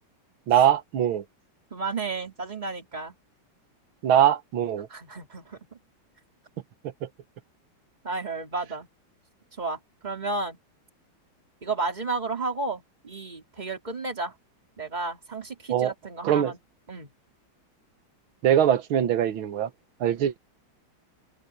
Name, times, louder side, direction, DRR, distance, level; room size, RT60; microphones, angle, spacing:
voice 1, 0.5-1.2 4.0-4.9 15.7-15.9 16.2-16.5 18.4-19.7 20.0-20.4, right 10 dB, 80° right, 1.9 m, -22 dB
voice 2, 1.7-3.1 4.9-5.8 8.0-8.9 9.6-10.6 11.6-14.3 14.8-16.6 16.9-17.1, right 3 dB, 20° right, 3.1 m, -32 dB
omnidirectional pair, 2.2 m